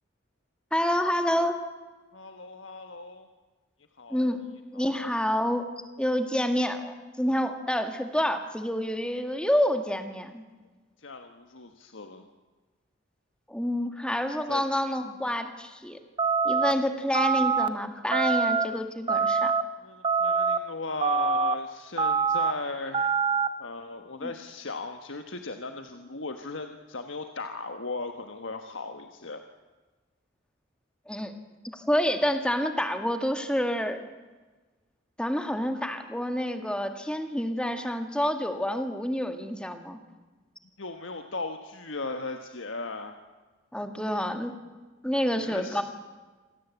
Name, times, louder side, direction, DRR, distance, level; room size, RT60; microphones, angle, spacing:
voice 1, 0.7-1.6 4.1-4.4 4.7-5.6 6.0-10.4 13.5-16.0 16.4-19.5 24.2-24.3 31.1-31.3 31.7-34.0 35.2-40.0 43.7-44.5 45.0-45.8, equal, 5° left, 6 dB, 1.8 m, -28 dB
voice 2, 2.1-3.3 4.0-4.3 4.7-5.1 11.0-12.3 14.5-14.6 19.8-23.1 23.6-29.4 40.8-43.2 45.4-45.8, left 3 dB, 80° left, 6 dB, 1.4 m, -37 dB
sound 1, 16.2-16.7 17.1-17.7 18.1-18.7 19.1-19.6 20.0-20.6 21.0-21.5 22.0-22.5 22.9-23.5, right 5 dB, 25° right, 0.9 m, -24 dB
26.5 x 17.0 x 8.3 m, 1.3 s
head